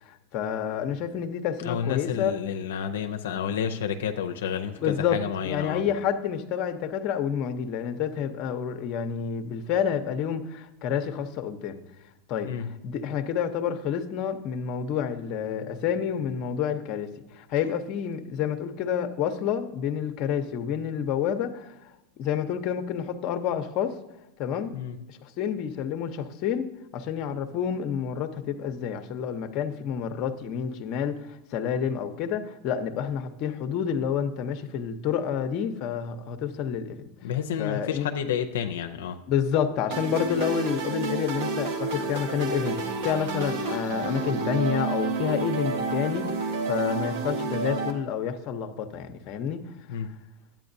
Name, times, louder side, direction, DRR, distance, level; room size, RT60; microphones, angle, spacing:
voice 1, 0.0-2.3 4.8-5.2 5.4-11.8 12.3-12.5 12.8-21.9 22.2-24.0 24.4-24.7 25.1-37.1 37.6-38.1 39.3-49.6 49.9-50.0, left 8 dB, 50° left, 8 dB, 0.7 m, -29 dB
voice 2, 1.6-5.8 12.4-12.7 24.7-25.0 37.2-39.2 49.9-50.2, left 8 dB, 85° left, 7 dB, 0.5 m, -30 dB
sound 1, 39.9-47.9, right 4 dB, 70° right, 1.3 m, -30 dB
11.0 x 8.6 x 2.7 m, 0.95 s
supercardioid pair, 120°, 0 cm